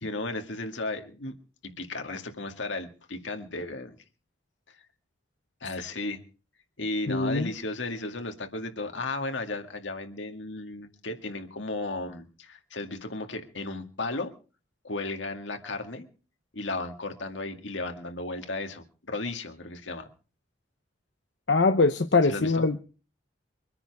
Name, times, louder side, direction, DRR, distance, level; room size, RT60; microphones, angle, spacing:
voice 1, 0.0-1.3 1.8-3.9 5.6-6.2 6.8-14.3 14.8-16.1 16.5-20.1 22.3-22.7, left 2 dB, 85° left, 6 dB, 2.1 m, -34 dB
voice 2, 7.1-7.5 21.5-22.8, left 3 dB, 65° left, 7 dB, 0.9 m, -22 dB
24.0 x 9.9 x 4.8 m, 0.37 s
head